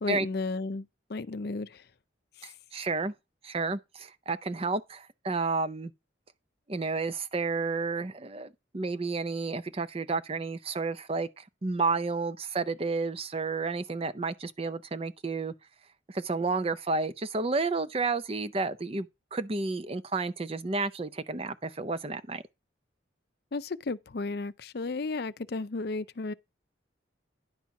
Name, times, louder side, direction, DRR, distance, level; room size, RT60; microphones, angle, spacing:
voice 1, 0.0-1.8 2.4-2.5 23.5-26.3, left 3 dB, 55° left, 0.5 m, -34 dB
voice 2, 2.4-3.1 3.4-5.9 6.7-15.5 16.1-22.4, right 3 dB, 30° right, 0.5 m, -31 dB
10.5 x 4.4 x 5.8 m
head